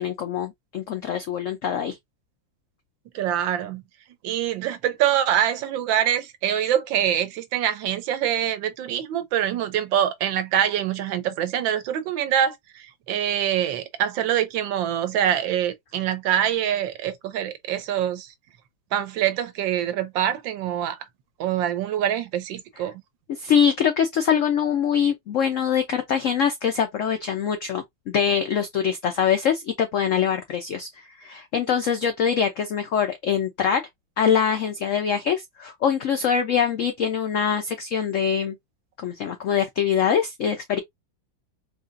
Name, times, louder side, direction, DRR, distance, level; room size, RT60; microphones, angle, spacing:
voice 1, 0.0-2.0 23.3-33.8 34.2-38.6 39.0-40.8, left 7 dB, 85° left, 0.6 m, -23 dB
voice 2, 3.1-3.8 4.2-18.3 18.9-21.0 21.4-22.9, right 10 dB, 80° right, 1.4 m, -25 dB
4.0 x 2.8 x 2.5 m
omnidirectional pair, 2.1 m